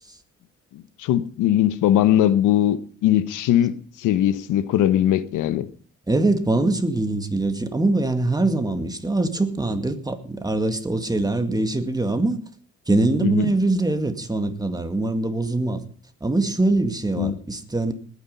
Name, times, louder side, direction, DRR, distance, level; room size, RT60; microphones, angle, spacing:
voice 1, 1.0-5.7 13.2-13.5 17.2-17.4, left 11 dB, 90° left, 1.0 m, -20 dB
voice 2, 6.1-12.4 12.9-15.8 16.2-17.9, right 2 dB, 15° right, 2.1 m, -23 dB
20.0 x 9.7 x 5.5 m
cardioid pair, 90°, 30 cm